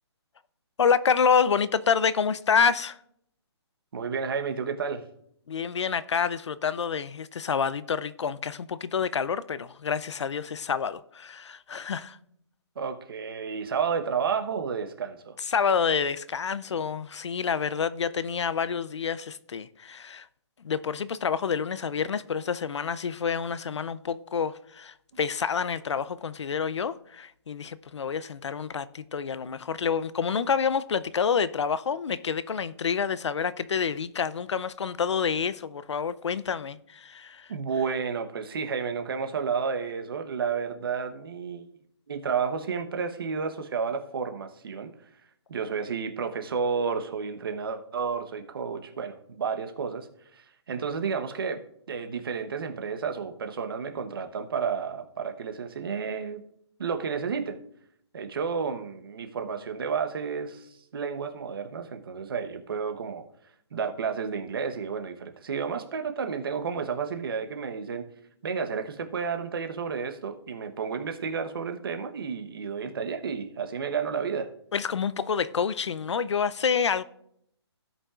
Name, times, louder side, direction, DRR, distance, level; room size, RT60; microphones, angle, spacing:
voice 1, 0.8-3.0 5.5-12.2 15.4-20.3 20.6-37.5 74.7-77.0, left 6 dB, 90° left, 0.6 m, -28 dB
voice 2, 3.9-5.0 12.8-15.4 37.5-41.7 42.1-44.9 45.5-50.1 50.3-51.6 51.9-56.4 56.8-57.6 58.1-63.2 63.7-68.0 68.4-74.5, right 6 dB, 55° right, 1.0 m, -31 dB
16.5 x 5.5 x 2.4 m
hypercardioid pair, 170°, 14 cm